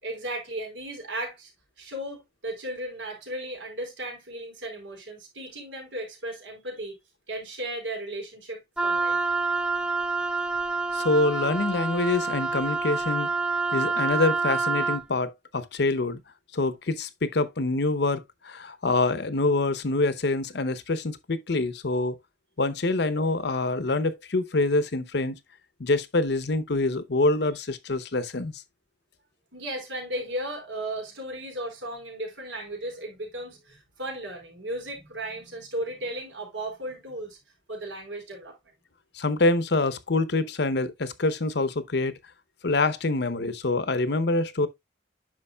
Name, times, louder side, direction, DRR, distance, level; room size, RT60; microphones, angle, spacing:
voice 1, 0.0-1.5 1.8-7.0 7.3-9.2 29.5-37.4 37.7-38.6, right 1 dB, 90° right, 4.8 m, -35 dB
Wind instrument woodwind instrument, 8.8-15.0, right 3 dB, 5° right, 0.3 m, -27 dB
voice 2, 10.9-13.3 13.7-16.2 16.5-22.2 22.6-25.4 25.8-28.5 39.1-42.2 42.6-44.7, left 2 dB, 60° left, 0.8 m, -25 dB
9.8 x 6.2 x 2.3 m
head